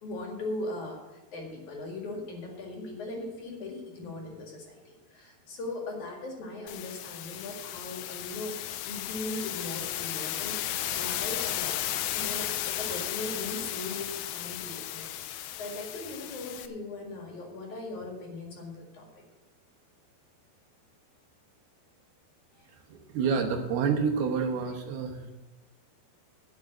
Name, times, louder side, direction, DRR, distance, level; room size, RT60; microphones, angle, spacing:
voice 1, 0.0-8.6 8.9-11.7 12.1-19.2 22.6-22.7, left 2 dB, 55° left, 0 dB, 3.1 m, -39 dB
sound 1, 6.7-16.7, left 12 dB, 80° left, 2.3 m, -34 dB
voice 2, 22.9-25.3, right 6 dB, 75° right, 2 dB, 3.0 m, -28 dB
10.5 x 7.3 x 7.8 m, 1.1 s
omnidirectional pair, 4.7 m